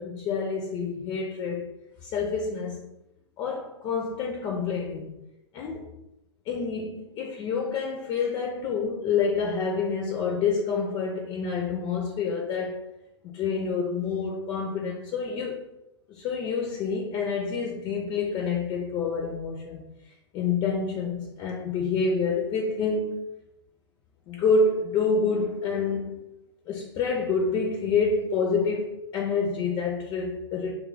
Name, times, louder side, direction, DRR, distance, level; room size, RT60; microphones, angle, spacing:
voice 1, 0.0-1.7 2.0-2.8 3.4-5.2 5.5-6.0 6.5-12.8 13.2-15.6 16.1-19.9 20.3-23.2 24.3-26.3 26.7-30.7, left 4 dB, 30° left, 0.5 m, -28 dB
2.9 x 2.3 x 3.7 m
figure-of-eight pair, 105°, 15 cm